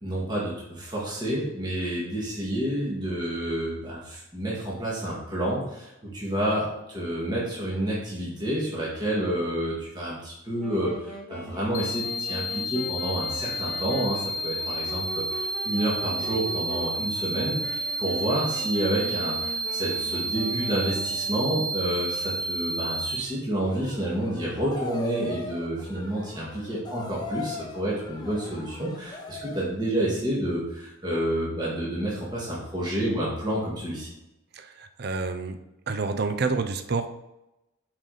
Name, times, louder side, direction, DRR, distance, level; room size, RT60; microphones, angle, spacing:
voice 1, 0.0-34.1, right 1 dB, 20° right, -7 dB, 1.9 m, -29 dB
Wind instrument woodwind instrument, 10.6-21.5, right 1 dB, 5° left, 1.1 m, -42 dB
sound 1, 11.7-23.2, right 1 dB, 85° left, 0.7 m, -31 dB
sound 2, 23.6-29.8, left 2 dB, 20° left, 0.7 m, -38 dB
voice 2, 34.5-35.6 35.9-37.1, right 4 dB, 50° right, 9 dB, 0.5 m, -28 dB
7.5 x 4.9 x 4.0 m, 0.90 s
head